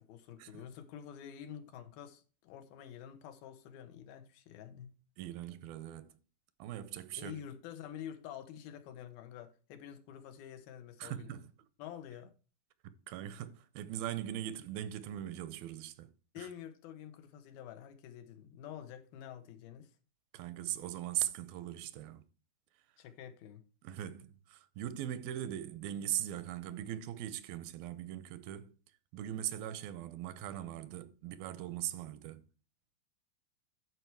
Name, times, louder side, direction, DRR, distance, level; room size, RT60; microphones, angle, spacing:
voice 1, 0.0-4.9 7.2-11.3 11.8-12.3 16.3-19.9 23.0-23.6, left 9 dB, 90° left, 3.0 m, -48 dB
voice 2, 5.2-6.1 6.6-7.3 11.0-11.5 12.8-16.1 16.4-16.5 20.3-22.2 23.8-28.7 29.1-32.4, right 12 dB, 90° right, 2.6 m, -40 dB
11.5 x 4.8 x 4.6 m
omnidirectional pair, 4.2 m